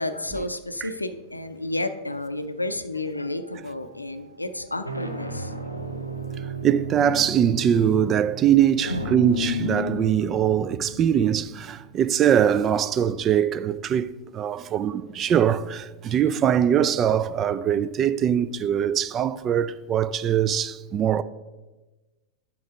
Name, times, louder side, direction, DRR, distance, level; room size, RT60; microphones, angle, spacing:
voice 1, 0.0-5.5 8.9-9.0 16.1-16.4, left 1 dB, 85° left, 0.5 m, -31 dB
sound 1, 3.4-3.8 4.6-13.2, left 1 dB, 90° right, 0.7 m, -34 dB
voice 2, 6.6-21.2, right 9 dB, 30° right, 0.3 m, -22 dB
7.6 x 5.9 x 5.1 m
figure-of-eight pair, 90°, 0 cm